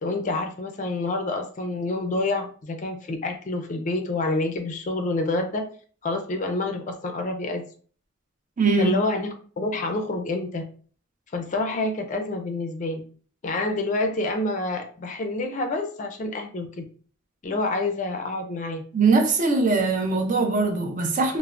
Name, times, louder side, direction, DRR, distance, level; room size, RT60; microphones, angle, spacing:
voice 1, 0.0-5.7 6.0-7.7 8.8-10.6 11.3-13.0 13.4-16.8 17.4-18.8, left 2 dB, 40° left, 0.4 m, -28 dB
voice 2, 8.6-9.0 18.9-21.4, right 3 dB, 40° right, 0.5 m, -21 dB
3.2 x 2.0 x 2.4 m
head